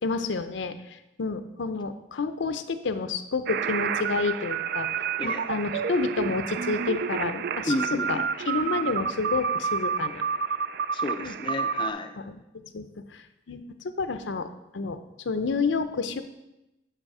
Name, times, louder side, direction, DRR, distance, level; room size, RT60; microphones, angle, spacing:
voice 1, 0.0-4.9 5.2-7.7 8.1-10.3 11.2-11.4 12.2-13.6 14.0-15.0 15.2-16.2, left 4 dB, 80° left, 10 dB, 0.6 m, -30 dB
sound 1, 3.5-11.9, right 6 dB, 60° right, 0.3 m, -29 dB
voice 2, 7.6-8.2 10.9-12.2, left 1 dB, 25° left, 5 dB, 0.5 m, -31 dB
9.0 x 4.9 x 4.8 m, 0.94 s
head